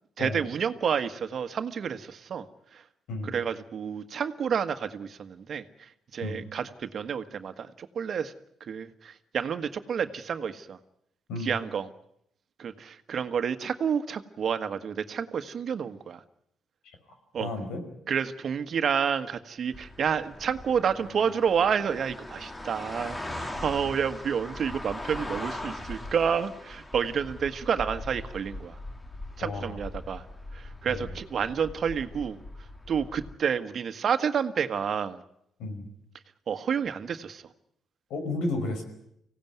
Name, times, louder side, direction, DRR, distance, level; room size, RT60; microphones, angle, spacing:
voice 1, 0.2-2.4 3.2-5.6 6.1-8.3 8.7-10.8 11.4-11.9 12.6-16.2 17.3-17.5 18.1-28.7 29.4-30.2 30.5-32.4 32.9-35.2 36.5-37.4, right 7 dB, 55° right, 9 dB, 1.5 m, -29 dB
voice 2, 17.4-17.8 29.4-29.8 30.9-31.1 35.6-35.9 38.1-38.8, left 2 dB, 85° left, 6 dB, 5.3 m, -32 dB
sound 1, 19.7-33.4, left 1 dB, 15° left, 2.0 m, -40 dB
24.5 x 17.0 x 9.4 m, 0.77 s
cardioid pair, 90°, 0 cm